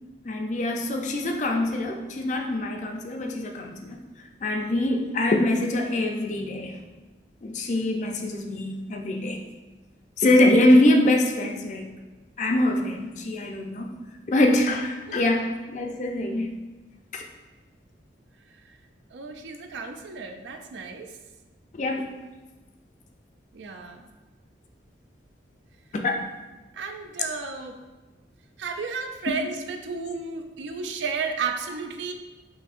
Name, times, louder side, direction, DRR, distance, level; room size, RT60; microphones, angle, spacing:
voice 1, 0.2-4.0 4.4-6.8 7.4-9.4 10.2-11.9 12.4-14.0 14.3-16.5 17.1-17.2 21.8-22.1 25.9-26.2, left 1 dB, 40° left, 3 dB, 0.4 m, -23 dB
voice 2, 15.1-15.5 18.6-18.8 19.1-21.2 23.5-24.0 26.7-27.8 28.6-32.1, right 5 dB, 75° right, 6 dB, 0.4 m, -33 dB
6.1 x 2.6 x 2.4 m, 1.2 s
head